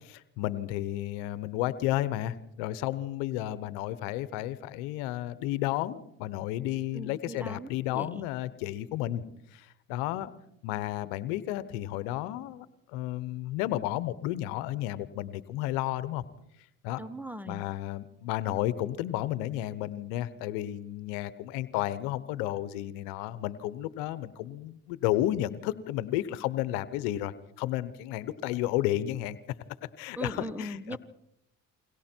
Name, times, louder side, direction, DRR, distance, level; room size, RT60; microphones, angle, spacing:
voice 1, 0.0-9.2 9.5-10.3 10.6-16.2 16.8-17.0 17.5-29.4 30.0-31.0, left 14 dB, 85° left, 16 dB, 1.1 m, -32 dB
voice 2, 6.9-8.3 17.0-17.6 30.1-31.0, equal, 5° right, 15 dB, 1.4 m, -39 dB
29.5 x 23.0 x 4.5 m, 0.77 s
supercardioid pair, 65°, 39 cm